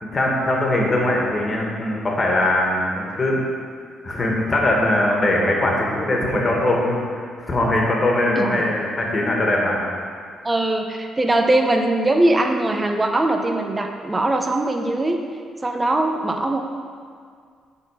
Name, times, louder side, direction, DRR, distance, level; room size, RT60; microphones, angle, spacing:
voice 1, 0.0-3.4 4.0-9.8, left 1 dB, 30° left, -2 dB, 1.6 m, -21 dB
voice 2, 10.4-15.2 15.6-16.6, right 2 dB, 20° right, 3 dB, 0.7 m, -21 dB
8.0 x 4.0 x 5.7 m, 2.1 s
cardioid pair, 90°, 0 cm